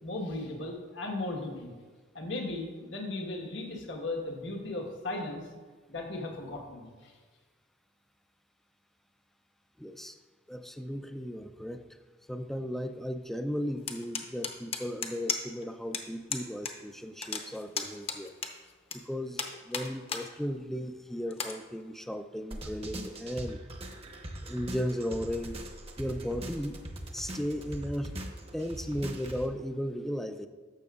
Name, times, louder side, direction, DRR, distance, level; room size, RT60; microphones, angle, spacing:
voice 1, 0.0-1.7 2.1-5.4 5.9-7.1, left 2 dB, 80° left, 1 dB, 1.3 m, -36 dB
voice 2, 9.8-10.2 10.5-11.9 12.3-18.3 19.1-23.6 24.4-25.6 26.0-26.8 27.1-28.2 28.5-30.5, equal, ahead, 8 dB, 0.3 m, -35 dB
sound 1, 13.9-15.6 15.9-16.0 16.3-16.7 17.0-19.0 19.4-20.3 20.7-20.8 21.3-21.5, left 5 dB, 30° left, 0.7 m, -34 dB
sound 2, 22.5-29.5, right 1 dB, 30° right, 0.8 m, -41 dB
12.0 x 6.9 x 2.4 m, 1.5 s
head